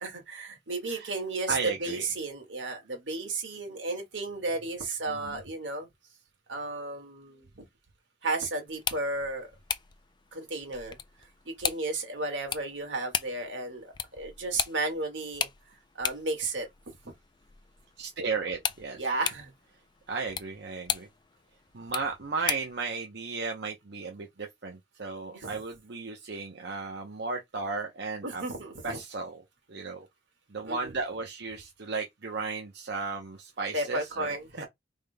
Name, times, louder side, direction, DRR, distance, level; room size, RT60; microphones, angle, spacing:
voice 1, 0.0-5.9 6.5-7.5 8.2-9.5 10.3-11.0 11.5-15.5 16.0-16.9 19.0-19.5 25.3-25.5 28.2-29.0 30.6-30.9 33.7-34.7, right 2 dB, 80° right, 1.9 m, -33 dB
voice 2, 1.5-2.0 5.1-5.4 18.0-19.0 20.1-21.1 21.7-28.4 28.8-29.4 29.7-30.1 30.5-34.6, right 4 dB, 65° right, 0.9 m, -35 dB
sound 1, 8.7-22.8, left 7 dB, 25° left, 0.4 m, -38 dB
5.2 x 3.6 x 2.2 m
head